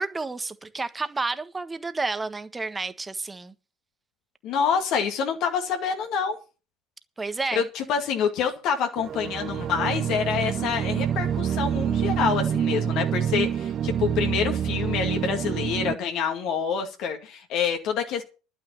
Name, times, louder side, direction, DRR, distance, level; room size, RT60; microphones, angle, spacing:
voice 1, 0.0-3.5 7.2-7.6, right 3 dB, 15° right, 1.4 m, -30 dB
voice 2, 4.4-6.4 7.6-18.2, left 7 dB, 55° left, 2.1 m, -27 dB
sound 1, 9.0-15.9, right 9 dB, 40° right, 0.7 m, -27 dB
11.5 x 9.2 x 7.2 m
figure-of-eight pair, 70°, 0 cm